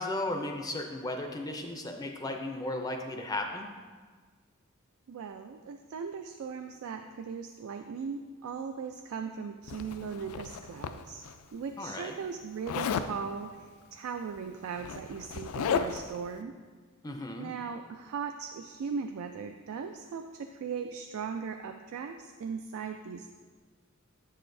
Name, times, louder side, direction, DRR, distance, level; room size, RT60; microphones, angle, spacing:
voice 1, 0.0-3.7 11.8-12.2 17.0-17.5, left 2 dB, 15° left, 3 dB, 0.4 m, -35 dB
voice 2, 5.1-11.2 11.5-16.6 17.4-23.3, right 6 dB, 80° right, 6 dB, 0.3 m, -38 dB
Zipper (clothing), 9.7-11.3 12.7-13.1 14.3-14.4 14.7-16.2, left 6 dB, 85° left, 0.3 m, -33 dB
7.6 x 6.5 x 2.6 m, 1.5 s
head